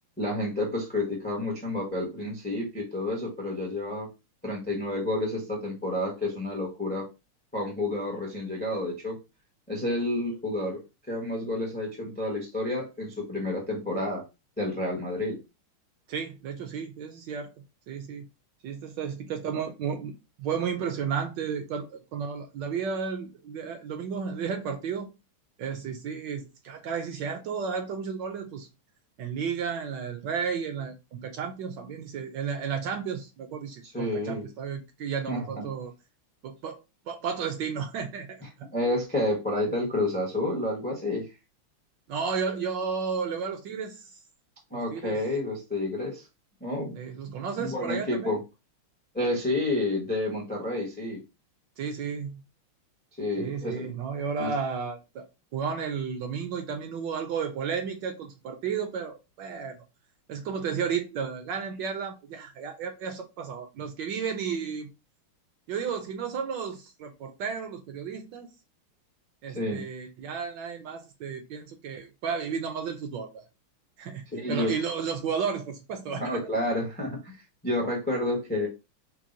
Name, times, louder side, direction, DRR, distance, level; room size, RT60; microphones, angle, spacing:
voice 1, 0.2-4.1 4.4-7.1 7.5-9.2 9.7-10.8 11.1-14.2 14.6-15.4 33.8-34.4 35.3-35.7 38.7-41.3 44.7-46.2 46.6-47.0 47.6-48.4 49.1-51.2 53.2-53.9 54.4-54.5 69.5-69.8 74.3-74.7 76.1-77.4 77.6-78.7, left 1 dB, 15° left, 0.3 m, -30 dB
voice 2, 16.1-18.3 18.6-20.1 20.4-25.1 25.6-28.7 29.2-35.9 36.4-36.8 37.1-38.7 42.1-44.2 44.7-45.2 46.9-48.4 51.8-52.4 53.4-55.3 55.5-59.8 60.3-64.9 65.7-68.5 69.4-73.4 74.0-76.4, right 6 dB, 70° right, 1.1 m, -33 dB
4.6 x 2.0 x 3.8 m
omnidirectional pair, 2.3 m